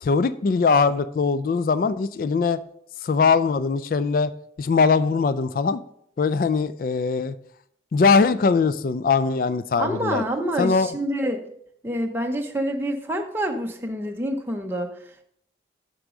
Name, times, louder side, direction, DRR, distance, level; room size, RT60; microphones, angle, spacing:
voice 1, 0.0-2.6 3.0-4.3 4.6-5.8 6.2-7.3 7.9-10.2 10.6-10.9, left 4 dB, 50° left, 14 dB, 0.3 m, -21 dB
voice 2, 9.8-11.4 11.8-14.9, equal, 10° right, 2 dB, 0.8 m, -27 dB
8.0 x 6.2 x 3.8 m, 0.68 s
head